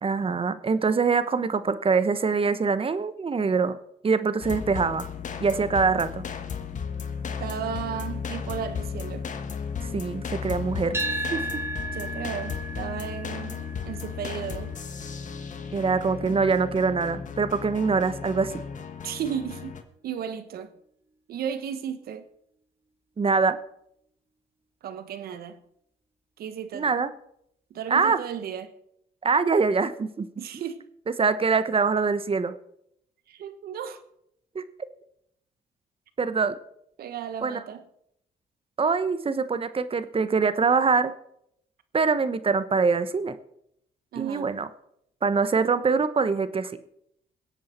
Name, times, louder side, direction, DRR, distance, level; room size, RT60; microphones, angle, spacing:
voice 1, 0.0-3.8 4.0-5.1 5.4-6.2 9.9-11.0 11.3-11.4 15.7-18.5 23.2-23.6 26.7-27.1 27.9-28.2 29.2-30.3 31.2-32.5 34.5-34.6 36.2-36.5 37.4-37.6 38.8-41.1 41.9-43.4 44.1-44.7 45.2-46.7, right 5 dB, 35° right, 1.1 m, -24 dB
sound 1, 4.4-19.8, left 6 dB, 50° left, 1.6 m, -35 dB
voice 2, 7.4-9.3 11.8-14.7 19.0-19.8 20.0-20.7 21.3-22.2 24.8-25.6 26.4-26.9 27.7-28.7 30.4-30.8 33.3-34.0 37.0-37.8 44.1-44.5, right 8 dB, 75° right, 1.2 m, -34 dB
sound 2, 10.9-19.1, right 1 dB, 15° right, 1.8 m, -37 dB
20.5 x 8.4 x 4.4 m
supercardioid pair, 70°, 16 cm